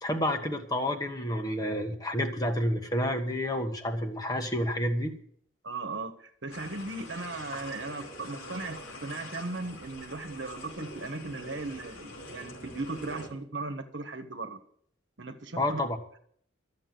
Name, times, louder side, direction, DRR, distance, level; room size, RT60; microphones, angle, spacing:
voice 1, 0.0-5.1 15.6-16.0, left 1 dB, 20° left, 4 dB, 1.4 m, -29 dB
voice 2, 5.6-14.6 15.2-15.8, right 3 dB, 65° right, 7 dB, 1.3 m, -37 dB
sound 1, 6.5-13.3, left 1 dB, 90° left, 4.9 m, -44 dB
13.5 x 7.6 x 7.7 m, 0.62 s
head